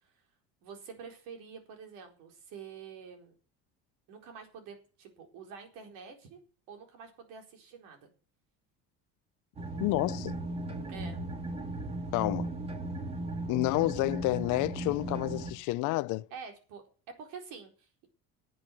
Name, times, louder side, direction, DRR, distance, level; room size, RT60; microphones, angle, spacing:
voice 1, 0.6-3.4 4.1-6.4 6.7-8.1 10.9-11.2 16.3-18.1, right 6 dB, 80° right, 4.4 m, -47 dB
sound 1, 9.6-15.5, right 2 dB, 20° right, 2.1 m, -37 dB
voice 2, 9.8-10.4 12.1-12.5 13.5-16.3, left 21 dB, 70° left, 0.6 m, -29 dB
10.5 x 7.9 x 10.0 m
cardioid pair, 130°, 32 cm